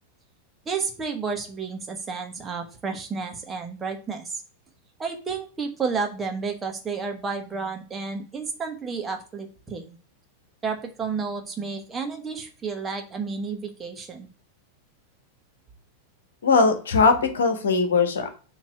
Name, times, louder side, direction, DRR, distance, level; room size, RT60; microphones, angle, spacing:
voice 1, 0.6-4.4 5.0-10.0 10.6-14.3, right 5 dB, 20° right, 3 dB, 1.5 m, -31 dB
voice 2, 16.4-18.3, left 4 dB, 65° left, 7 dB, 1.4 m, -20 dB
7.3 x 3.2 x 6.0 m, 0.37 s
figure-of-eight pair, 90°, 0 cm